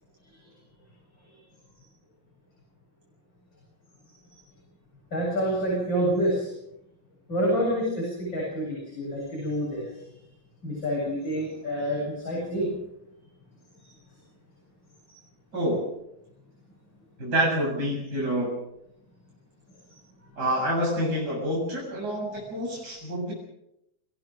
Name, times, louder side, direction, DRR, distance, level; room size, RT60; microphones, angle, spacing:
voice 1, 5.1-6.5 7.3-9.9 10.6-12.7 13.8-13.9, equal, 70° left, -4 dB, 8.5 m, -28 dB
voice 2, 17.2-18.5 20.4-23.3, right 1 dB, 55° right, -4 dB, 8.3 m, -27 dB
29.0 x 16.5 x 6.4 m, 0.81 s
omnidirectional pair, 2.1 m